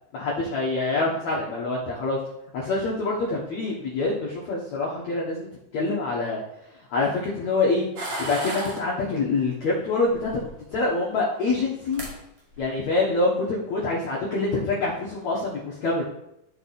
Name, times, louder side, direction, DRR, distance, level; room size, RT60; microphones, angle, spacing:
voice 1, 0.1-2.2 2.5-5.5 5.7-6.4 6.9-7.8 8.2-12.1 12.6-16.0, left 3 dB, 85° left, -5 dB, 1.5 m, -26 dB
sound 1, 8.0-8.8 10.1-10.8 11.7-11.8 11.9-12.1 12.5-12.9, right 1 dB, 55° right, 1.6 m, -33 dB
13.5 x 5.4 x 4.2 m, 0.83 s
omnidirectional pair, 5.6 m